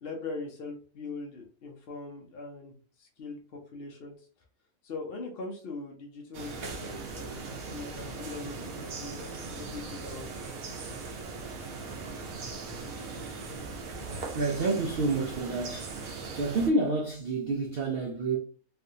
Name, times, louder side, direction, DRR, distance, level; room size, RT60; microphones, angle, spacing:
voice 1, 0.0-4.3 4.8-10.4, left 3 dB, 55° left, 0.7 m, -41 dB
sound 1, 6.3-16.7, right 4 dB, 80° right, 1.2 m, -39 dB
voice 2, 14.0-15.9 16.3-18.4, right 3 dB, 60° right, 0.6 m, -29 dB
3.3 x 2.5 x 2.7 m
omnidirectional pair, 1.5 m